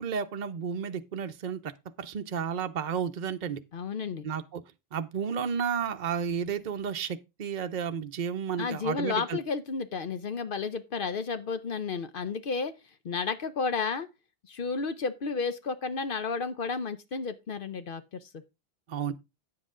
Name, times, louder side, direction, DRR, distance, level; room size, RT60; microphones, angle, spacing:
voice 1, 0.0-1.7 2.0-3.6 4.2-4.6 4.9-9.4 18.9-19.1, right 7 dB, 50° right, 0.7 m, -32 dB
voice 2, 3.7-4.3 8.6-12.7 13.0-14.1 14.5-18.3, left 5 dB, 60° left, 0.9 m, -32 dB
9.6 x 7.6 x 3.7 m
omnidirectional pair, 1.0 m